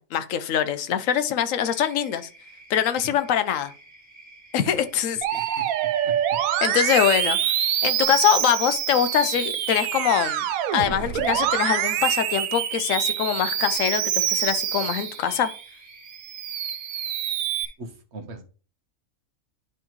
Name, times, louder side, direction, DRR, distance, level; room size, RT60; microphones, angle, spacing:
voice 1, 0.0-2.3 2.7-3.7 4.5-5.6 6.6-7.4 7.8-10.4 10.7-15.5, left 9 dB, 70° left, 11 dB, 1.0 m, -23 dB
sound 1, 1.6-17.7, right 2 dB, 10° right, 1.7 m, -50 dB
Musical instrument, 5.2-15.6 16.1-17.7, right 11 dB, 80° right, 1.0 m, -26 dB
voice 2, 5.3-6.2 17.8-18.4, right 2 dB, 50° right, 4 dB, 1.3 m, -41 dB
10.5 x 3.6 x 3.0 m, 0.38 s
omnidirectional pair, 1.5 m